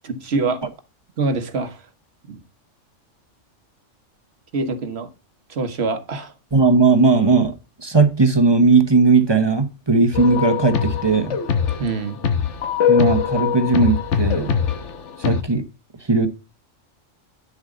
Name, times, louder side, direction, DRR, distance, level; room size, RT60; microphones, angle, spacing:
voice 1, 0.0-0.6 1.2-1.9 2.3-2.4 4.5-5.1 5.5-6.3 11.8-12.2, right 3 dB, 55° right, 1.5 m, -25 dB
voice 2, 6.5-11.4 12.9-14.6 15.2-15.6 16.1-16.3, right 3 dB, 20° right, 1.0 m, -17 dB
sound 1, 10.1-15.4, left 7 dB, 70° left, 1.4 m, -22 dB
9.7 x 7.1 x 3.9 m
omnidirectional pair, 1.3 m